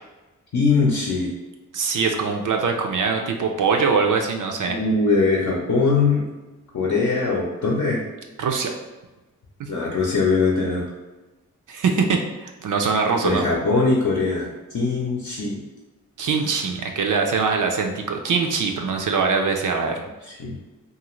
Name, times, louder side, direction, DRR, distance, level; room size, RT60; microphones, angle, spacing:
voice 1, 0.5-1.3 4.7-6.3 6.7-8.0 9.7-10.9 13.2-15.6 20.3-20.5, left 4 dB, 50° left, -3 dB, 0.6 m, -21 dB
voice 2, 1.7-4.8 8.4-8.7 9.6-9.7 11.7-13.4 16.2-20.0, right 5 dB, 60° right, 3 dB, 0.5 m, -22 dB
2.5 x 2.4 x 3.0 m, 1.1 s
cardioid pair, 55°, 35 cm